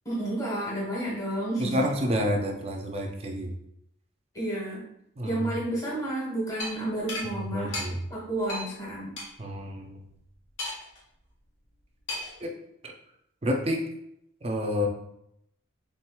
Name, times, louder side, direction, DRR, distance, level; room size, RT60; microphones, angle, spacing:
voice 1, 0.0-1.7 4.3-4.8 5.2-7.7 8.1-9.1, right 1 dB, 15° left, -5 dB, 1.1 m, -31 dB
voice 2, 1.6-3.5 5.2-5.5 7.4-8.0 9.4-10.0 12.4-12.5 12.8-12.9 13.4-13.8 14.4-14.9, equal, 30° right, 2 dB, 0.5 m, -29 dB
sound 1, 6.6-6.7 7.1-7.3 7.7-7.9 8.5-8.7 9.2-9.3 10.6-11.0 12.1-12.4, left 2 dB, 70° left, 1.2 m, -33 dB
4.4 x 3.7 x 2.3 m, 0.76 s
head